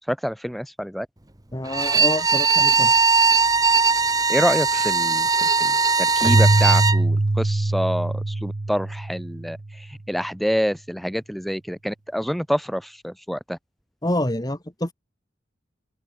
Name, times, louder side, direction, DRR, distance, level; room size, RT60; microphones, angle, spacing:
voice 1, 0.1-1.1 4.3-13.6, equal, ahead, 1.2 m, -27 dB
voice 2, 1.5-2.9 14.0-14.9, left 1 dB, 20° left, 2.0 m, -27 dB
Bowed string instrument, 1.7-7.0, right 4 dB, 20° right, 1.1 m, -19 dB
Keyboard (musical), 6.2-9.8, right 2 dB, 40° right, 0.7 m, -22 dB
open air
head